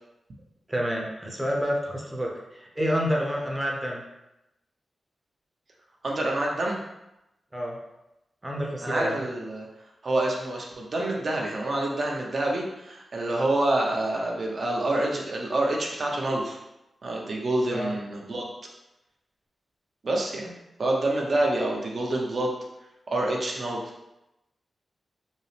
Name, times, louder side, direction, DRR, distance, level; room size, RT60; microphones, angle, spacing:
voice 1, 0.7-4.0 7.5-7.8 8.4-9.2 17.7-18.0, equal, 15° right, -1 dB, 0.7 m, -29 dB
voice 2, 6.0-6.8 8.8-9.7 10.0-16.6 17.0-18.5 20.0-20.5 20.8-22.5 23.1-23.8, right 1 dB, 45° right, -1 dB, 0.7 m, -27 dB
5.3 x 2.0 x 3.3 m, 0.91 s
wide cardioid pair, 155°, 0 cm